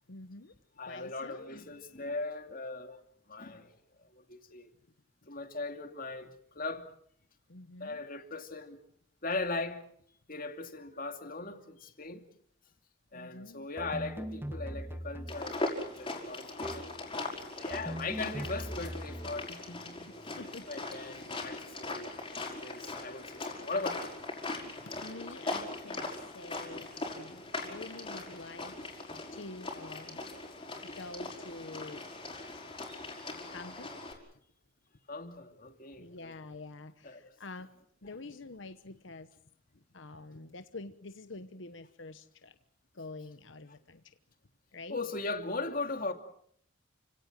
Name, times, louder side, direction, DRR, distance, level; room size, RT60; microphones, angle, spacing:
voice 1, 0.1-0.5 0.9-1.5 7.5-8.0 13.1-13.7 20.1-21.0 21.4-21.5 24.8-30.3 30.8-32.1 33.5-34.0 36.0-37.7 38.0-39.3 39.7-42.6 42.9-44.0 44.7-45.0, left 3 dB, 65° left, 1.1 m, -47 dB
voice 2, 0.8-3.0 3.3-3.7 4.0-4.7 5.3-6.8 7.8-8.8 9.2-9.8 10.3-12.3 13.1-20.1 20.7-22.2 22.5-24.1 35.1-36.4 37.0-37.3 38.0-38.2 44.9-46.1, left 3 dB, 45° left, 2.6 m, -39 dB
sound 1, 13.8-15.6 16.6-17.0 17.7-19.5, equal, 10° right, 1.2 m, -40 dB
sound 2, 15.3-34.1, left 2 dB, 25° left, 5.4 m, -40 dB
29.5 x 17.5 x 7.8 m
head